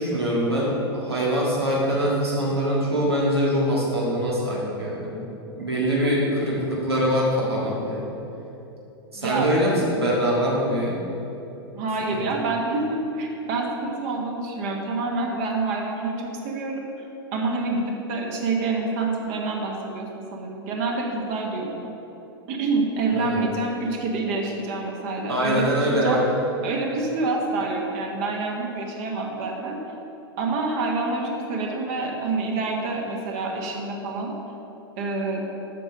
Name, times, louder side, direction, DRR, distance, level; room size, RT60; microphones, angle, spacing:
voice 1, 0.0-5.2 5.6-8.2 9.1-11.0 12.1-12.2 23.1-23.4 25.3-26.2, equal, 80° right, -5 dB, 1.7 m, -23 dB
voice 2, 9.1-9.5 11.7-16.9 17.3-21.9 22.5-26.2 26.6-29.8 30.4-34.3 35.0-35.4, right 3 dB, 40° right, 0 dB, 1.3 m, -27 dB
8.3 x 6.5 x 5.2 m, 2.9 s
figure-of-eight pair, 95°, 13 cm